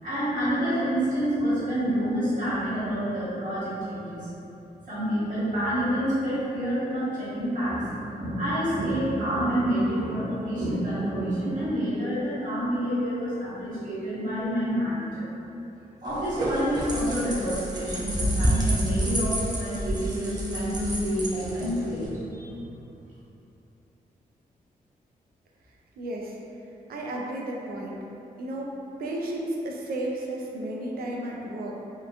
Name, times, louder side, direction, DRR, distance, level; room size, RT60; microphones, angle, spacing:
voice 1, 0.0-4.3 4.9-15.3 16.0-22.5, equal, 60° right, -11 dB, 1.3 m, -28 dB
sound 1, 16.0-22.1, right 1 dB, 25° right, 0.5 m, -29 dB
voice 2, 26.0-26.4 26.9-28.0 28.4-28.7 29.0-31.8, right 1 dB, 85° right, -2 dB, 0.4 m, -33 dB
2.8 x 2.2 x 2.4 m, 2.8 s
cardioid pair, 85°, 15 cm